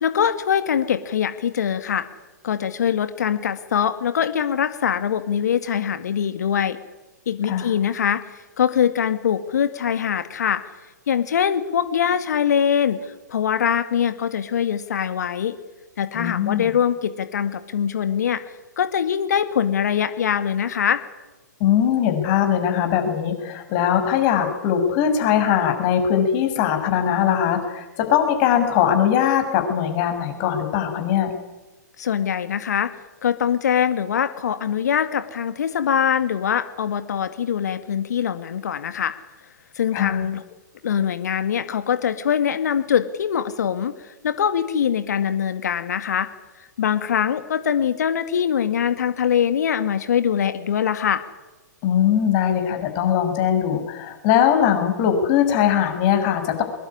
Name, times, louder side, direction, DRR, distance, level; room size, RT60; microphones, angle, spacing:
voice 1, 0.0-2.0 2.4-6.8 7.3-8.2 8.6-10.6 11.1-15.6 16.0-18.4 18.8-21.0 32.0-32.9 33.2-39.1 39.8-40.4 40.8-43.9 44.2-46.3 46.8-51.2, left 8 dB, 65° left, 10 dB, 2.1 m, -23 dB
voice 2, 16.1-16.7 21.6-31.3 39.9-40.2 51.8-56.6, left 9 dB, 40° left, 6 dB, 6.6 m, -20 dB
24.5 x 21.0 x 9.9 m, 1.1 s
figure-of-eight pair, 115°, 10 cm